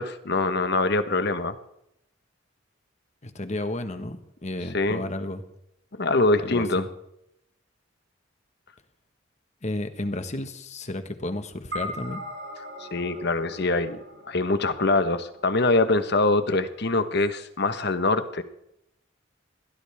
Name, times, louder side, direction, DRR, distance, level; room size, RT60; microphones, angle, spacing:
voice 1, 0.0-1.6 4.7-5.0 6.0-6.8 12.8-14.0 14.3-18.4, left 2 dB, 55° left, 10 dB, 1.3 m, -24 dB
voice 2, 3.2-5.4 6.4-6.9 9.6-12.2, left 1 dB, 35° left, 8 dB, 1.5 m, -32 dB
sound 1, 11.7-16.3, left 1 dB, 60° right, 6.7 m, -40 dB
22.0 x 17.0 x 3.6 m, 0.80 s
head